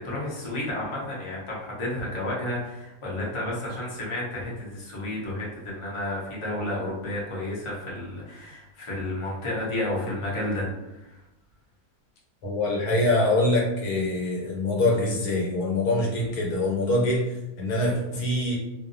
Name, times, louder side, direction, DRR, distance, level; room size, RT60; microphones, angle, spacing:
voice 1, 0.0-11.2, left 1 dB, 40° left, -5 dB, 0.4 m, -31 dB
voice 2, 12.4-18.6, left 1 dB, 75° left, -2 dB, 1.2 m, -24 dB
2.6 x 2.1 x 2.5 m, 0.96 s
omnidirectional pair, 1.6 m